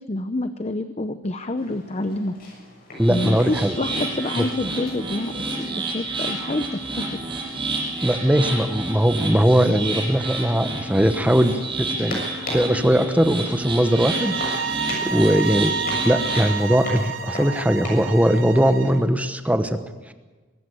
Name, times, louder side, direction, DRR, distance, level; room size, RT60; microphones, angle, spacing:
voice 1, 0.0-2.3 3.1-7.2, left 2 dB, 30° left, 10 dB, 0.7 m, -28 dB
sound 1, 1.6-19.0, left 1 dB, 50° left, 7.0 m, -40 dB
voice 2, 3.0-3.8 4.4-4.5 8.0-12.2 12.5-14.6 15.0-15.7 16.0-19.8 20.1-20.2, equal, 5° right, 9 dB, 1.0 m, -20 dB
sound 2, 3.0-16.5, right 2 dB, 25° right, 6.9 m, -30 dB
sound 3, 13.8-19.0, right 5 dB, 75° right, 1.2 m, -30 dB
23.5 x 14.5 x 8.4 m, 1.3 s
head